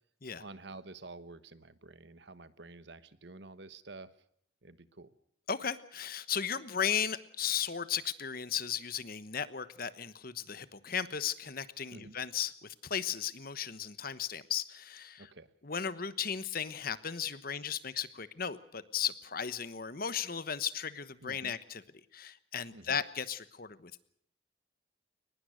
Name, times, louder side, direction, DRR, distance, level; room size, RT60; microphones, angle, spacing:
voice 1, 0.4-4.1 4.6-5.1 11.9-12.2 15.2-15.5 21.2-21.6 22.7-23.0, right 3 dB, 60° right, 14 dB, 1.3 m, -49 dB
voice 2, 5.5-15.3 15.6-21.8 22.1-24.0, left 8 dB, 45° left, 14 dB, 1.1 m, -36 dB
22.5 x 20.5 x 6.4 m, 0.68 s
head